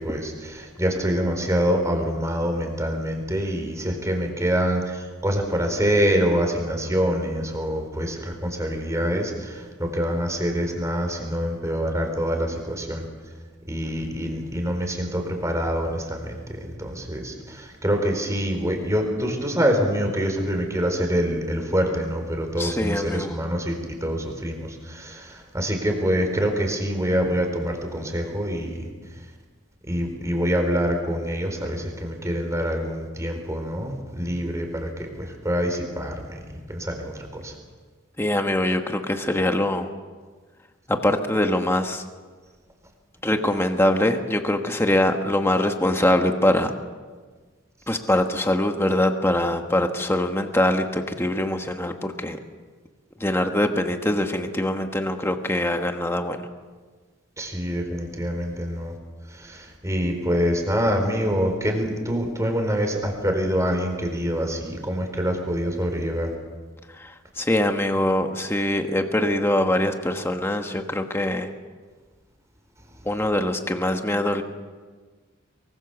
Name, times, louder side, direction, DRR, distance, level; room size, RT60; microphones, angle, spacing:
voice 1, 0.0-13.1 13.7-28.8 29.9-36.4 36.7-37.6 57.4-58.9 59.3-66.3, equal, 15° right, 4 dB, 4.3 m, -25 dB
voice 2, 22.6-23.4 38.2-39.9 40.9-42.0 43.2-46.7 47.9-52.4 53.2-56.5 66.9-71.5 73.0-74.4, left 1 dB, 10° left, 5 dB, 1.3 m, -23 dB
24.0 x 24.0 x 7.1 m, 1.4 s
head